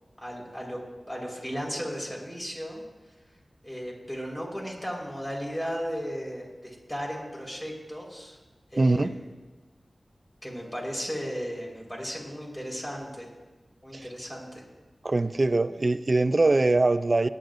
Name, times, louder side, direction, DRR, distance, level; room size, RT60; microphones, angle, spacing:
voice 1, 0.2-0.8 1.1-2.8 3.6-8.4 8.7-9.2 10.4-13.3 13.8-14.6, equal, 20° left, -2 dB, 4.6 m, -35 dB
voice 2, 8.8-9.1 13.9-14.1 15.0-17.3, right 2 dB, 50° right, 11 dB, 0.5 m, -22 dB
18.5 x 11.0 x 2.6 m, 1.2 s
cardioid pair, 40°, 0 cm